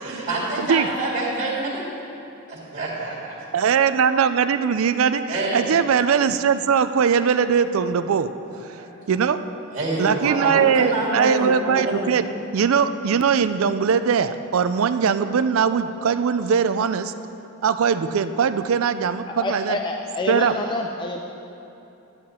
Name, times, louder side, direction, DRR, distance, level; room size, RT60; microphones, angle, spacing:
voice 1, 0.0-1.8 2.5-3.3 5.3-5.7 8.8-8.9 9.7-12.1, right 2 dB, 40° right, -8 dB, 2.2 m, -26 dB
voice 2, 3.5-8.3 9.1-9.4 10.0-12.3 12.5-17.1 17.6-19.8 20.3-20.5, right 6 dB, 75° right, 11 dB, 0.4 m, -20 dB
voice 3, 19.3-21.2, left 2 dB, 20° left, 2 dB, 0.4 m, -27 dB
11.0 x 9.8 x 4.3 m, 2.8 s
head